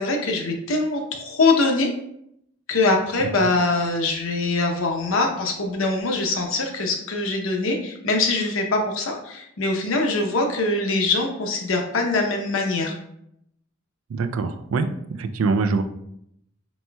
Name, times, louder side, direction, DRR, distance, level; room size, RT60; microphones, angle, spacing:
voice 1, 0.0-1.9 2.7-12.9, left 3 dB, 75° left, 2 dB, 0.7 m, -23 dB
voice 2, 14.1-15.8, right 4 dB, 80° right, 9 dB, 0.4 m, -24 dB
4.2 x 4.2 x 2.2 m, 0.75 s
head